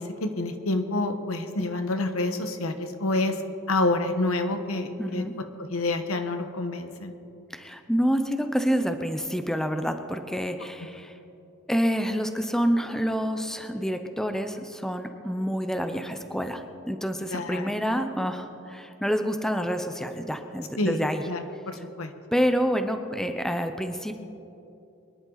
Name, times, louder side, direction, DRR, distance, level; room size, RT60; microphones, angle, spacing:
voice 1, 0.0-3.4 3.7-5.2 5.7-7.1 17.3-17.7 20.8-21.0 21.3-22.1, left 2 dB, 85° left, 7 dB, 1.2 m, -28 dB
voice 2, 5.0-5.3 7.5-11.2 11.7-21.3 21.7-21.8 22.3-24.1, equal, ahead, 7 dB, 0.6 m, -28 dB
24.0 x 11.0 x 4.0 m, 2.9 s
head